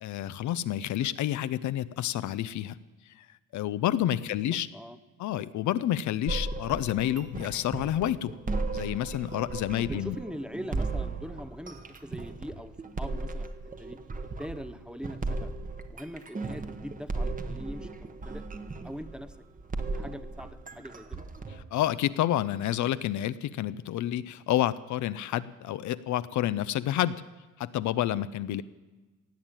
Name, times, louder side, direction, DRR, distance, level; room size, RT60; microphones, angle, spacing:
voice 1, 0.0-2.8 3.2-3.3 3.5-4.7 5.2-8.3 8.7-10.2 21.7-27.2 27.6-28.6, left 12 dB, 75° left, 15 dB, 0.6 m, -29 dB
voice 2, 4.3-5.0 9.3-9.5 9.9-13.5 13.8-15.5 15.9-18.4 18.8-19.4 19.9-21.2, equal, 5° right, 11 dB, 0.7 m, -42 dB
sound 1, 6.3-21.6, right 3 dB, 25° right, 1.2 m, -36 dB
17.5 x 7.4 x 8.9 m, 1.2 s
cardioid pair, 90°, 30 cm